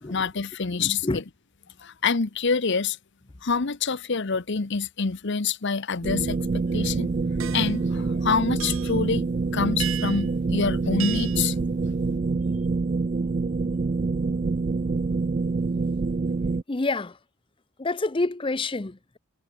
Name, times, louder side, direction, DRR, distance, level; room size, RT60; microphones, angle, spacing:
voice 1, 0.1-1.2 1.8-3.0 3.4-7.1 7.5-9.2 9.5-11.5, left 5 dB, 55° left, 0.9 m, -26 dB
voice 2, 0.7-1.2 16.7-17.2 17.8-19.2, left 2 dB, 25° left, 0.6 m, -28 dB
sound 1, 6.0-16.6, right 3 dB, 35° right, 0.3 m, -26 dB
sound 2, 7.3-16.3, equal, 10° right, 2.9 m, -52 dB
sound 3, 7.4-7.8 8.6-9.0 9.8-10.3 11.0-11.5, right 12 dB, 70° right, 2.6 m, -34 dB
head